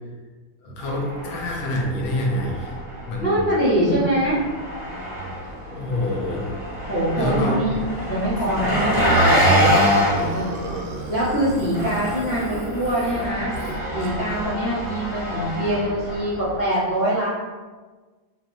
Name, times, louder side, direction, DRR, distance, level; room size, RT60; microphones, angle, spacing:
voice 1, 0.6-2.8 3.1-3.5 5.7-6.5 7.2-7.8 8.4-8.5, left 1 dB, 75° left, -1 dB, 1.4 m, -26 dB
Engine, 0.8-16.6, equal, 15° right, 1.0 m, -26 dB
voice 2, 3.2-4.4 6.9-7.8 8.1-10.6 11.1-13.5 13.9-17.3, right 1 dB, 50° left, -9 dB, 0.8 m, -23 dB
Burping eructation, 9.5-14.3, right 1 dB, 70° right, 1.2 m, -35 dB
4.5 x 2.1 x 3.7 m, 1.3 s
omnidirectional pair, 2.3 m